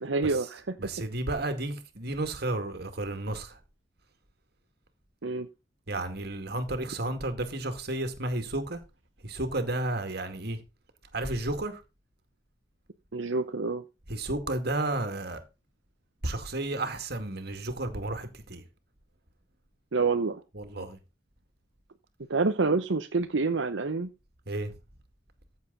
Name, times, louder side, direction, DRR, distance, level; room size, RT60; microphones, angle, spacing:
voice 1, 0.0-0.8 5.2-5.5 13.1-13.8 19.9-20.4 22.3-24.1, right 4 dB, 80° right, 0.8 m, -27 dB
voice 2, 0.8-3.6 5.9-8.8 9.2-10.6 11.1-11.8 14.1-15.4 16.2-18.6 20.5-21.0 24.5-24.7, right 2 dB, 60° right, 2.2 m, -32 dB
14.5 x 7.4 x 4.0 m
head